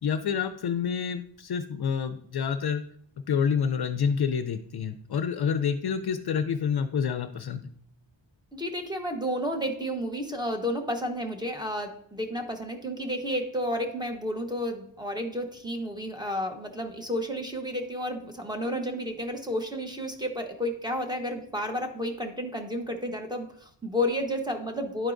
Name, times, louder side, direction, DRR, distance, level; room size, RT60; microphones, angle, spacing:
voice 1, 0.0-2.8 3.3-7.7, left 7 dB, 55° left, 9 dB, 0.5 m, -28 dB
voice 2, 8.5-25.1, equal, 10° right, 1 dB, 1.0 m, -31 dB
11.0 x 4.5 x 2.5 m, 0.64 s
wide cardioid pair, 90°, 47 cm